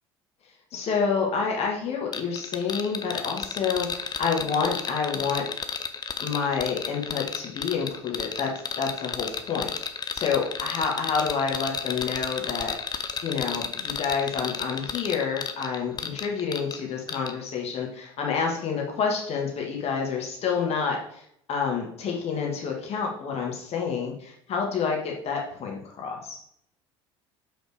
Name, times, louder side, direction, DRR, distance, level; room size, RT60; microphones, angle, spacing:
voice 1, 0.7-5.5 6.2-8.5 8.8-12.7 13.2-26.4, left 6 dB, 45° left, 0 dB, 1.7 m, -28 dB
sound 1, 2.1-16.8 17.1-17.3, left 6 dB, 30° left, 0.7 m, -32 dB
5.6 x 4.3 x 4.9 m, 0.71 s
hypercardioid pair, 70°, 14 cm